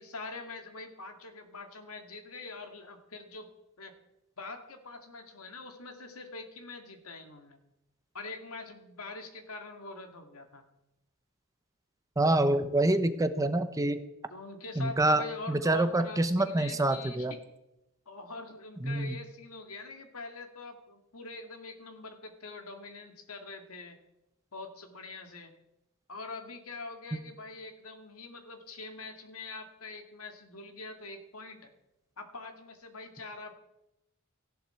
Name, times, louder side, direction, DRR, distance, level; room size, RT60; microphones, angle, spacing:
voice 1, 0.0-3.5 3.8-3.9 4.4-7.6 8.1-10.6 14.3-17.4 18.1-24.0 24.5-25.5 26.1-31.7 32.2-33.5, left 3 dB, 70° left, 5 dB, 2.2 m, -44 dB
voice 2, 12.2-14.0 14.8-17.3 18.8-19.2, right 2 dB, 15° right, 10 dB, 0.7 m, -26 dB
18.0 x 14.5 x 4.5 m, 0.89 s
head